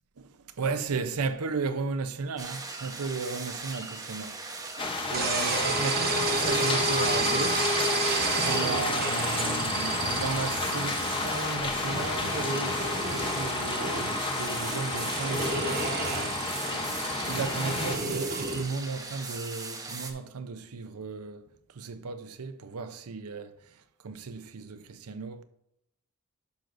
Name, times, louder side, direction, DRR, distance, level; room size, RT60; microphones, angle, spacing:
voice 1, 0.2-4.7 5.1-7.7 8.3-16.6 17.3-21.5 21.7-25.4, right 4 dB, 90° right, 0.6 m, -35 dB
sound 1, 2.4-20.1, right 3 dB, 15° right, 0.9 m, -39 dB
sound 2, 4.8-18.0, left 3 dB, 25° left, 0.8 m, -32 dB
sound 3, 5.1-18.6, right 3 dB, 45° right, 1.0 m, -31 dB
10.5 x 6.4 x 2.6 m
head